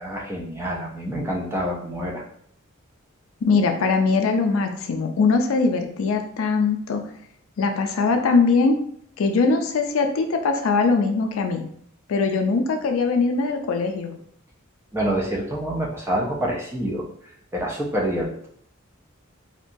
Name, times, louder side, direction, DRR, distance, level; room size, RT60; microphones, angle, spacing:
voice 1, 0.0-2.2 14.9-17.1 17.5-18.5, right 1 dB, 10° right, -2 dB, 0.4 m, -27 dB
voice 2, 3.4-7.0 7.6-8.8 9.2-11.6 12.1-14.1, left 4 dB, 70° left, 5 dB, 0.4 m, -21 dB
2.8 x 2.2 x 2.5 m, 0.65 s
head